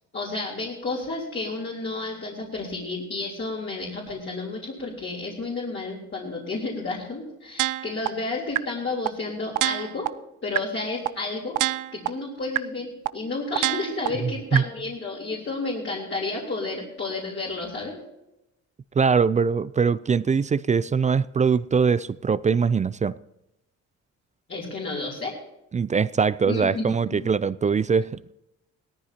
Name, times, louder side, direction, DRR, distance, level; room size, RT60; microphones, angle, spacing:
voice 1, 0.1-10.1 10.4-11.5 11.9-18.0 24.5-25.3 26.5-26.8 27.1-27.2, left 3 dB, 40° left, 3.5 m, -31 dB
sound 1, 7.6-8.1 8.6-8.7 9.1-9.2 9.6-10.1 10.6-10.7 11.1-11.2 11.6-12.1 12.6-12.7 13.1-13.2 13.6-14.1 14.6-14.7, right 17 dB, 85° right, 0.5 m, -24 dB
voice 2, 19.0-23.1 25.7-28.3, right 5 dB, 25° right, 0.4 m, -22 dB
18.0 x 14.0 x 2.9 m
cardioid pair, 90°, 30 cm